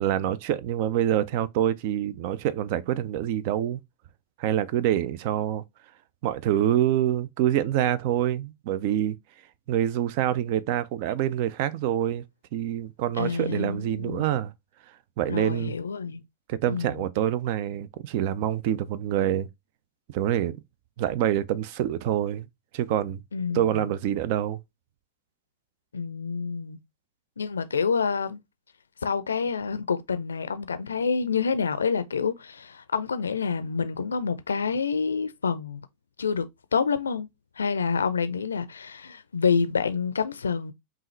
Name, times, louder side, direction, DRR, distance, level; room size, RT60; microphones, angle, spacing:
voice 1, 0.0-3.8 4.4-5.6 6.2-9.2 9.7-12.2 12.5-14.5 15.2-15.7 16.5-19.5 20.1-20.6 21.0-22.5 22.7-23.2 23.5-24.6, right 11 dB, 50° right, 0.4 m, -26 dB
voice 2, 13.2-14.4 15.3-16.2 16.7-17.0 23.3-23.9 25.9-26.8 27.4-28.4 29.0-35.9 36.2-36.5 36.7-37.3 37.6-40.7, left 5 dB, 70° left, 0.4 m, -28 dB
5.4 x 2.5 x 3.1 m
figure-of-eight pair, 90°, 0 cm